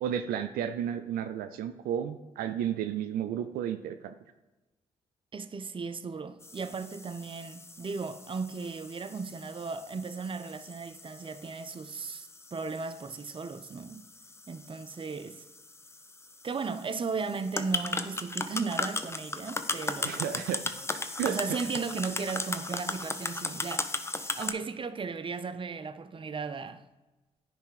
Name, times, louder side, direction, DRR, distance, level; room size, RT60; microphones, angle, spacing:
voice 1, 0.0-4.1 20.0-20.8 21.2-21.4, right 9 dB, 80° right, 0.4 m, -32 dB
voice 2, 5.3-14.1 14.5-15.4 16.4-20.5 21.2-26.9, right 4 dB, 35° right, 0.6 m, -36 dB
sound 1, 6.4-24.5, left 2 dB, 15° left, 0.7 m, -38 dB
10.0 x 3.4 x 4.8 m
supercardioid pair, 50°, 15 cm